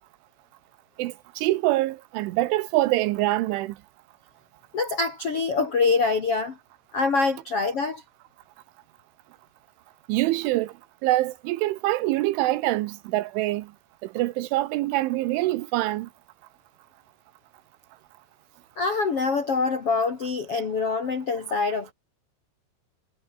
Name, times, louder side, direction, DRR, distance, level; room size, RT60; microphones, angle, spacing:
voice 1, 1.0-3.8 10.1-10.7 11.0-13.7 14.0-16.1, right 17 dB, 85° right, 3.2 m, -25 dB
voice 2, 4.7-6.6 6.9-8.0 18.8-21.9, left 4 dB, 40° left, 2.3 m, -25 dB
omnidirectional pair, 5.7 m